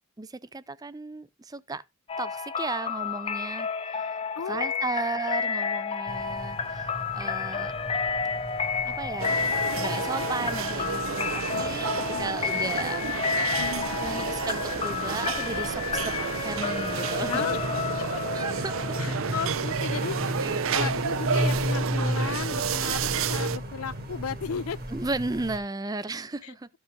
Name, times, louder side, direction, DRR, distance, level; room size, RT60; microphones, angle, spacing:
voice 1, 0.2-1.8 2.2-4.2 4.5-6.9 7.1-7.7 8.8-9.4 9.7-13.0 14.0-17.4 18.3-18.8 20.4-20.9 24.9-26.7, right 3 dB, 15° right, 0.4 m, -35 dB
sound 1, 2.1-19.7, left 6 dB, 25° left, 0.6 m, -31 dB
voice 2, 4.4-5.0 12.0-12.3 17.2-17.6 18.0-18.1 19.0-20.4 20.7-24.8 26.4-26.5, left 7 dB, 80° left, 0.5 m, -35 dB
sound 2, 6.1-25.6, equal, 45° right, 1.7 m, -35 dB
sound 3, 9.2-23.6, right 6 dB, 70° right, 0.5 m, -31 dB
13.5 x 5.5 x 3.7 m
head